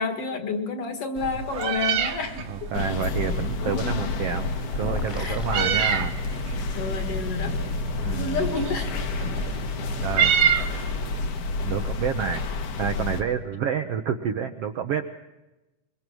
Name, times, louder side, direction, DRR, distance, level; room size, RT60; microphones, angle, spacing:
voice 1, 0.0-2.7 5.2-5.9 6.8-7.6 8.1-9.2, left 4 dB, 55° left, 7 dB, 2.2 m, -30 dB
Meow, 1.2-11.3, right 7 dB, 55° right, 1.8 m, -29 dB
voice 2, 2.5-4.5 4.7-6.1 8.0-8.5 10.0-10.3 11.6-15.1, right 8 dB, 70° right, 6 dB, 1.5 m, -29 dB
sound 1, 2.7-13.2, left 3 dB, 75° left, 3.2 m, -29 dB
sound 2, 4.7-6.8, left 3 dB, 15° left, 1.4 m, -35 dB
24.0 x 22.5 x 6.2 m, 1.0 s
omnidirectional pair, 3.7 m